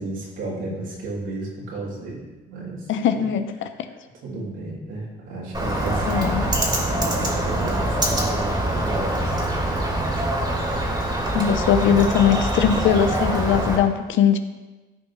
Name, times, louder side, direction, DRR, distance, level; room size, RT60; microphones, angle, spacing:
voice 1, 0.0-3.3 4.2-9.8, right 2 dB, 80° right, -5 dB, 3.1 m, -33 dB
voice 2, 2.9-3.5 3.8-3.9 6.1-6.5 11.3-14.4, left 8 dB, 75° left, 9 dB, 0.7 m, -20 dB
Bird, 5.5-13.8, right 1 dB, 20° right, 2.5 m, -24 dB
14.0 x 5.3 x 3.2 m, 1.2 s
cardioid pair, 90°, 20 cm